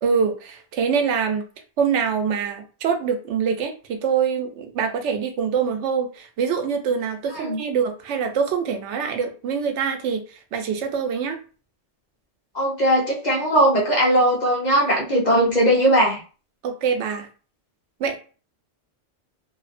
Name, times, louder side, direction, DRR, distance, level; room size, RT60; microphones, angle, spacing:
voice 1, 0.0-1.5 1.8-11.4 16.6-17.3 18.0-18.2, right 6 dB, 90° right, 5 dB, 0.9 m, -24 dB
voice 2, 12.5-16.2, equal, 45° left, -3 dB, 0.8 m, -19 dB
2.6 x 2.0 x 2.5 m, 0.36 s
omnidirectional pair, 1.2 m